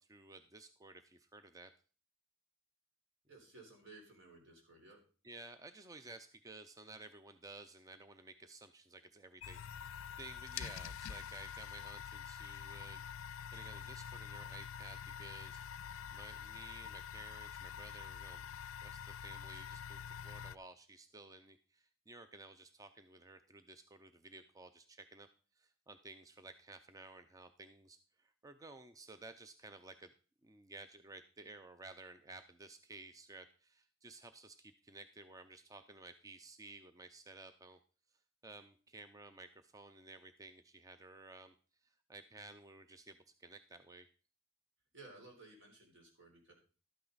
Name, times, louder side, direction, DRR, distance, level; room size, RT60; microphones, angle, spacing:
voice 1, 0.0-1.7 5.2-15.6 16.1-18.4 18.8-25.3 25.6-30.1 30.4-37.8 38.4-41.5 41.8-44.1, right 3 dB, 15° right, 9 dB, 0.5 m, -55 dB
voice 2, 3.3-5.0 44.9-46.5, right 2 dB, 65° right, 1 dB, 3.7 m, -57 dB
sound 1, 9.4-20.6, left 8 dB, 85° left, 0.4 m, -46 dB
12.5 x 8.9 x 3.9 m, 0.38 s
head